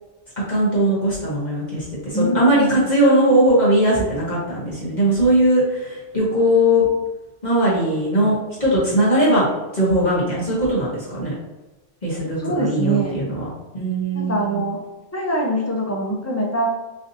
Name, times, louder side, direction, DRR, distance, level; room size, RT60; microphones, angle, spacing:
voice 1, 0.5-6.8 7.4-9.5 9.7-11.3 12.0-13.5 13.7-14.6, right 1 dB, 40° left, -8 dB, 1.2 m, -19 dB
voice 2, 2.1-2.8 12.4-13.2 14.1-14.8 15.1-16.7, right 1 dB, 20° left, -2 dB, 0.4 m, -23 dB
4.9 x 2.7 x 2.7 m, 1.1 s
omnidirectional pair, 1.2 m